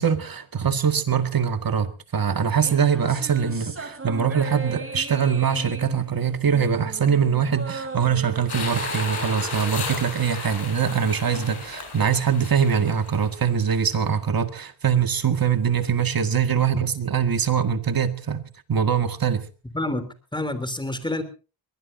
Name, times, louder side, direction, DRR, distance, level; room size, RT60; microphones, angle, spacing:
voice 1, 0.0-18.4 18.7-19.5, right 7 dB, 45° right, 2.0 m, -23 dB
sound 1, 2.5-11.1, right 3 dB, 25° right, 4.0 m, -37 dB
sound 2, 8.5-13.7, left 5 dB, 55° left, 7.8 m, -34 dB
voice 2, 19.7-21.2, left 1 dB, 10° left, 3.2 m, -28 dB
23.0 x 19.5 x 2.7 m
cardioid pair, 85°, 48 cm